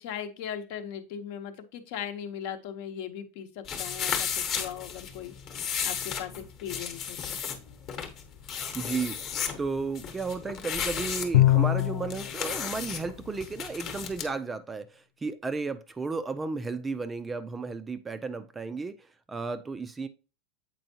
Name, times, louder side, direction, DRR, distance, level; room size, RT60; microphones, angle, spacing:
voice 1, 0.0-5.3 5.8-7.4, left 9 dB, 60° left, 0.8 m, -38 dB
sound 1, 3.7-14.3, left 7 dB, 35° left, 1.0 m, -34 dB
voice 2, 8.7-9.2 9.6-20.1, right 4 dB, 15° right, 0.3 m, -33 dB
Bowed string instrument, 11.3-12.2, left 14 dB, 85° left, 0.4 m, -21 dB
7.7 x 4.4 x 2.7 m
supercardioid pair, 150°, 0 cm